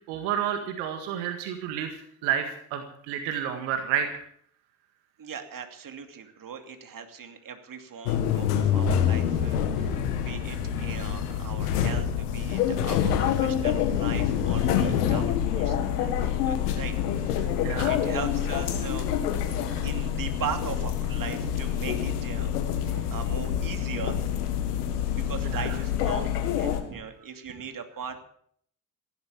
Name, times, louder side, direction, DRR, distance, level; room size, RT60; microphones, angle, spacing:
voice 1, 0.1-4.2 17.6-17.9 25.4-25.7, right 9 dB, 80° right, 6 dB, 1.8 m, -30 dB
voice 2, 5.2-19.1 19.8-22.5 22.9-24.2 25.1-28.2, right 6 dB, 45° right, 6 dB, 2.7 m, -39 dB
sound 1, 8.0-26.8, left 9 dB, 85° left, 1.8 m, -26 dB
15.5 x 12.0 x 7.2 m, 0.63 s
hypercardioid pair, 55°, 46 cm